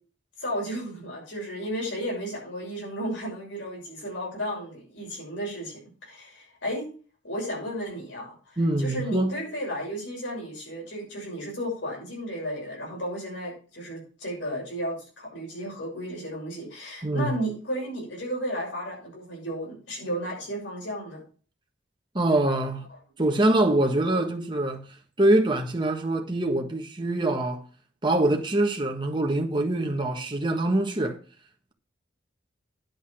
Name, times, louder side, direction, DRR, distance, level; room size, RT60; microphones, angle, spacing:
voice 1, 0.4-6.8 7.2-21.2, equal, 80° left, 6.5 m, -33 dB
voice 2, 8.6-9.4 17.0-17.3 22.1-22.9 23.2-24.8 25.2-27.6 28.0-31.2, right 1 dB, 25° right, 1.5 m, -24 dB
10.5 x 5.4 x 6.3 m
head